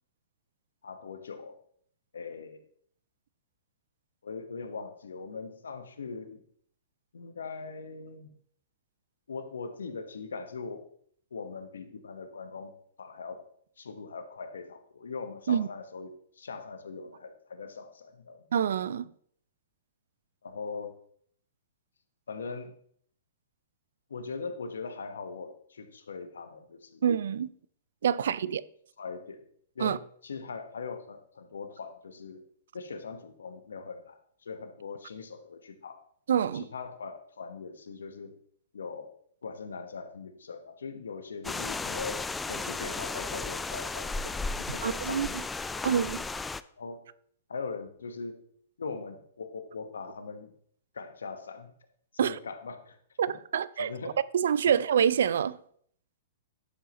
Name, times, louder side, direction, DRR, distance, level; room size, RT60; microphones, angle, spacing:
voice 1, 0.8-1.6 2.1-2.6 4.2-6.4 7.1-8.3 9.3-10.8 11.3-12.7 13.0-13.4 13.8-18.4 20.4-20.9 22.3-22.7 24.1-27.0 28.1-28.2 29.0-29.4 29.7-32.4 32.7-36.0 36.5-38.3 38.7-39.1 39.4-45.4 45.7-45.8 46.8-47.0 47.5-48.4 48.8-50.5 50.9-51.7 52.1-53.0 53.3-53.4 53.8-54.1, left 4 dB, 85° left, 1.2 m, -41 dB
voice 2, 18.5-19.1 27.0-27.5 28.0-28.6 29.8-30.0 36.3-36.6 44.8-45.3 45.8-46.2 52.2-52.4 53.2-53.3 53.5-53.9 54.3-55.6, right 8 dB, 70° right, 0.4 m, -26 dB
sound 1, 41.4-46.6, left 3 dB, 10° left, 0.3 m, -34 dB
11.5 x 7.7 x 3.0 m
hypercardioid pair, 120°, 0 cm